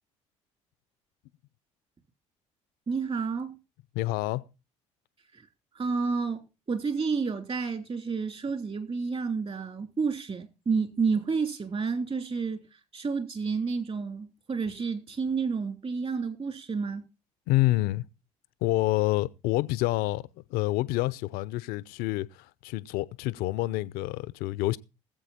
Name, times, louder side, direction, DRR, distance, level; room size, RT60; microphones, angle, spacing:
voice 1, 2.9-3.6 5.3-5.4 5.7-12.7 12.9-17.0, right 5 dB, 35° right, 3.2 m, -30 dB
voice 2, 3.9-4.4 17.5-18.1 18.6-20.2 20.5-24.8, left 18 dB, 65° left, 0.7 m, -27 dB
19.0 x 7.8 x 4.2 m
hypercardioid pair, 55°, 16 cm